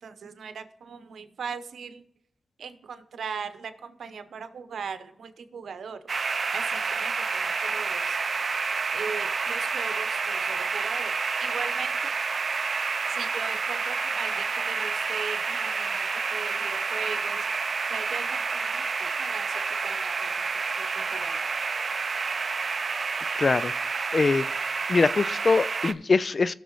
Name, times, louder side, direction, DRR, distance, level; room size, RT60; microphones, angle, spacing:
voice 1, 0.0-2.0 2.6-6.0 6.5-8.2 8.9-11.1 11.4-11.9 13.1-16.0 16.3-17.4 17.9-20.3 20.8-21.4, right 6 dB, 90° right, 0.9 m, -39 dB
sound 1, 6.1-25.9, right 5 dB, 60° right, 0.5 m, -29 dB
voice 2, 23.4-23.7 24.1-24.5 24.9-26.5, left 4 dB, 50° left, 0.4 m, -22 dB
18.5 x 6.8 x 3.1 m
cardioid pair, 65°, 0 cm